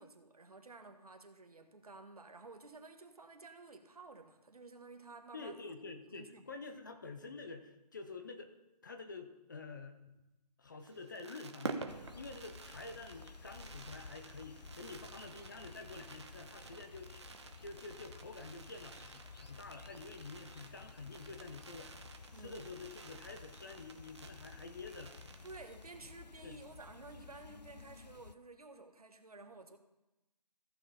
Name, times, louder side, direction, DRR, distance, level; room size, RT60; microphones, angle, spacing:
voice 1, 0.0-5.5 6.1-6.4 22.3-22.6 25.4-29.8, right 3 dB, 65° right, 6 dB, 1.5 m, -53 dB
voice 2, 5.3-8.5 8.8-10.3 10.6-17.1 17.6-21.9 22.3-25.2 26.4-26.6, left 3 dB, 30° left, 6 dB, 0.7 m, -48 dB
Fireworks, 10.8-26.0 26.3-26.4 26.6-26.9, right 4 dB, 40° right, 0.9 m, -50 dB
sound 1, 11.9-28.3, left 4 dB, 90° left, 0.6 m, -54 dB
14.5 x 6.6 x 4.2 m, 0.97 s
figure-of-eight pair, 155°, 21 cm